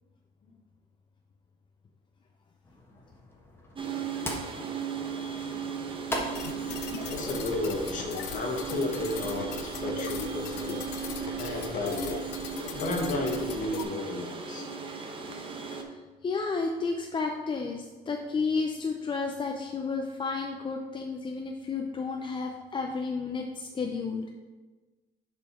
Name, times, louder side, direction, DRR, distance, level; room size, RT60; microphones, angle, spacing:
sound 1, 2.6-8.0, left 1 dB, 15° left, 1.2 m, -40 dB
sound 2, 3.8-15.8, right 6 dB, 30° right, 0.9 m, -36 dB
sound 3, 6.3-13.8, left 8 dB, 90° left, 0.5 m, -40 dB
voice 1, 7.0-10.8 11.4-12.2 12.7-14.6, left 2 dB, 50° left, 1 dB, 1.5 m, -33 dB
voice 2, 15.9-24.3, left 4 dB, 30° left, 2 dB, 0.5 m, -32 dB
7.1 x 4.5 x 4.3 m, 1.3 s
cardioid pair, 110°, 17 cm